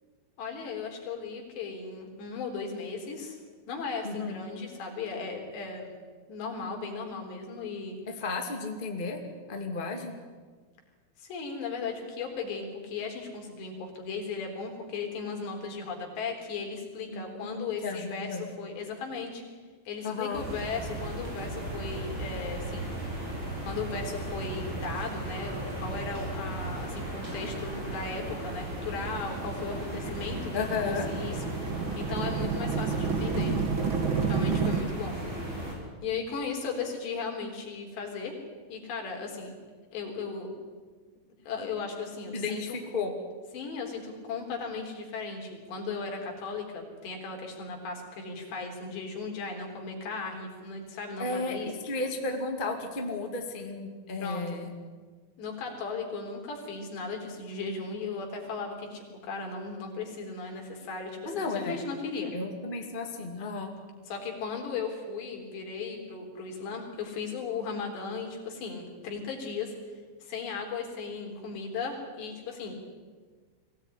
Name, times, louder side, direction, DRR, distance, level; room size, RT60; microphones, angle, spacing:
voice 1, 0.4-3.4 3.7-5.9 6.3-8.0 11.2-19.4 19.9-23.3 23.6-33.6 34.3-35.2 36.0-38.3 38.7-39.5 39.9-40.5 41.5-42.6 43.5-51.7 54.2-54.5 55.4-62.3 64.1-69.7 70.2-72.7, left 4 dB, 70° left, 1 dB, 5.8 m, -36 dB
voice 2, 4.0-4.4 8.1-9.2 9.5-10.1 17.1-18.4 20.0-20.4 30.5-31.1 42.3-43.1 51.2-54.7 61.2-61.8 62.3-63.7, left 3 dB, 20° left, 2 dB, 1.6 m, -33 dB
sound 1, 20.3-35.7, right 1 dB, 25° right, 6.7 m, -36 dB
sound 2, 27.9-34.8, right 5 dB, 70° right, 1.1 m, -31 dB
23.0 x 17.0 x 10.0 m, 1.5 s
omnidirectional pair, 5.1 m